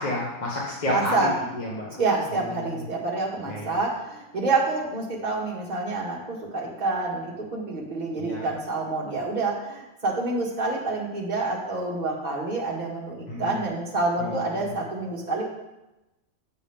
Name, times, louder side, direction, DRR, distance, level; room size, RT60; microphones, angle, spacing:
voice 1, 0.0-1.9 2.3-2.8 3.5-3.7 8.2-8.5 13.3-13.6 14.2-14.7, left 1 dB, 35° left, -4 dB, 1.3 m, -30 dB
voice 2, 0.9-1.3 2.0-15.5, right 3 dB, 35° right, -4 dB, 1.7 m, -28 dB
7.2 x 7.0 x 3.6 m, 0.98 s
omnidirectional pair, 1.4 m